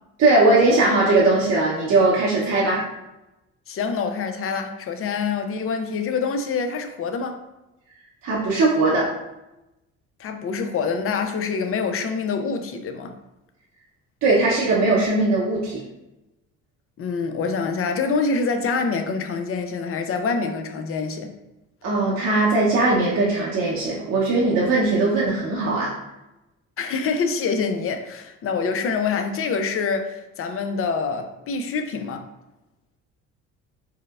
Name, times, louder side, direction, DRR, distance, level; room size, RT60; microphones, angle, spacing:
voice 1, 0.2-2.8 8.2-9.1 14.2-15.8 21.8-25.9, right 2 dB, 50° right, 0.8 m, -19 dB
voice 2, 3.7-7.4 10.2-13.1 17.0-21.3 26.8-32.3, left 5 dB, 40° left, 0.5 m, -26 dB
4.6 x 2.0 x 2.3 m
hypercardioid pair, 60°, 34 cm